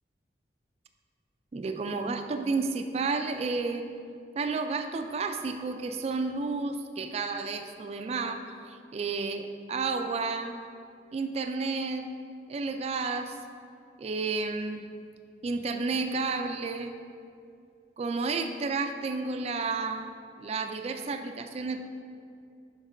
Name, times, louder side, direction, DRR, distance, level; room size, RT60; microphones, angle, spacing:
voice 1, 1.5-3.9 4.4-10.6 11.1-12.1 12.5-13.4 14.0-14.8 15.4-17.0 18.0-20.1 20.4-21.8, right 4 dB, 35° right, 7 dB, 0.3 m, -31 dB
6.4 x 5.3 x 5.1 m, 2.4 s
head